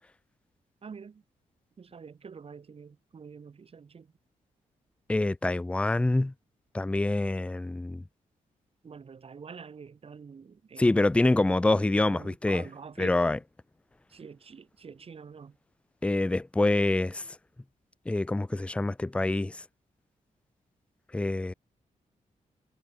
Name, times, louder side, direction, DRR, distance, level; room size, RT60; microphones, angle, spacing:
voice 1, 0.8-1.2 1.8-4.1 8.8-10.9 11.6-13.4 14.1-15.6, right 6 dB, 45° right, 2.6 m, -46 dB
voice 2, 5.1-6.3 6.7-8.0 10.8-12.6 13.0-13.4 16.0-17.3 18.1-19.6 21.1-21.5, left 2 dB, 10° left, 0.5 m, -26 dB
wide cardioid pair, 120°, 14 cm